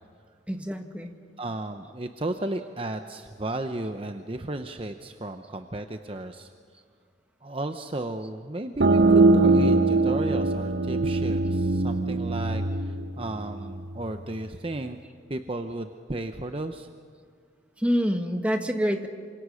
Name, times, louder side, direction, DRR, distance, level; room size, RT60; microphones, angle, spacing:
voice 1, 0.5-1.1 17.8-19.1, equal, 5° right, 4 dB, 1.5 m, -26 dB
voice 2, 1.4-6.5 7.4-15.0 15.3-16.9, right 2 dB, 30° right, 7 dB, 0.8 m, -34 dB
sound 1, 8.8-14.2, right 3 dB, 80° right, 1.2 m, -22 dB
27.5 x 26.0 x 6.4 m, 2.1 s
head